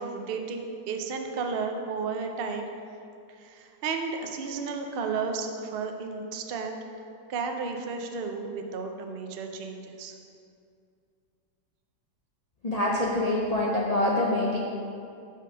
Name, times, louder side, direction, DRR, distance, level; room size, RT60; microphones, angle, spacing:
voice 1, 0.0-2.6 3.4-6.8 7.3-10.1, right 4 dB, 90° right, 4 dB, 0.5 m, -33 dB
voice 2, 12.6-14.6, left 1 dB, 60° left, -4 dB, 0.4 m, -25 dB
5.6 x 5.2 x 6.5 m, 2.5 s
omnidirectional pair, 1.8 m